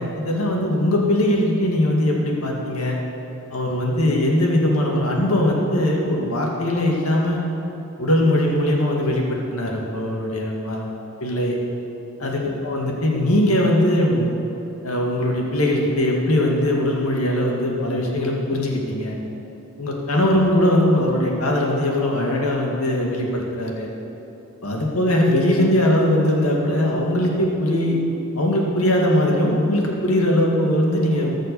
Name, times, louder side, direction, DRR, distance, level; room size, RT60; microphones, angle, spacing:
voice 1, 0.0-3.0 3.5-7.4 8.0-10.9 11.2-11.6 12.2-14.3 14.8-19.2 19.8-23.9 24.6-28.0 28.4-31.3, left 1 dB, 85° left, -1 dB, 2.1 m, -20 dB
17.5 x 6.5 x 6.9 m, 3.0 s
head